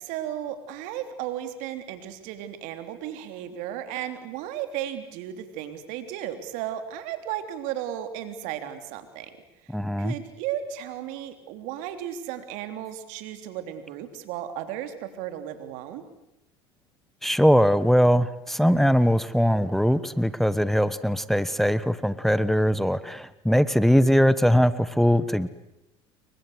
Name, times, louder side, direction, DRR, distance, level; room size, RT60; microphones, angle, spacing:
voice 1, 0.0-9.3 10.0-16.0, right 11 dB, 70° right, 9 dB, 3.4 m, -34 dB
voice 2, 9.7-10.1 17.2-25.5, equal, ahead, 15 dB, 1.3 m, -21 dB
29.5 x 23.5 x 8.1 m, 0.91 s
hypercardioid pair, 75°, 14 cm